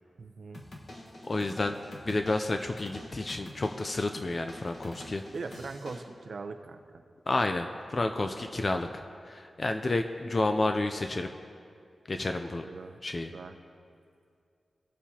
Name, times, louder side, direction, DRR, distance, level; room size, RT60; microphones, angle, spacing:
voice 1, 0.2-0.6 5.3-7.0 12.5-13.0 13.3-13.6, right 4 dB, 65° right, 7 dB, 0.7 m, -41 dB
sound 1, 0.5-6.0, left 1 dB, 55° left, 1.3 m, -46 dB
voice 2, 1.3-5.2 7.3-11.3 12.1-12.7 13.0-13.3, left 2 dB, 35° left, 6 dB, 0.4 m, -30 dB
19.0 x 7.1 x 2.8 m, 2.4 s
wide cardioid pair, 120°, 0 cm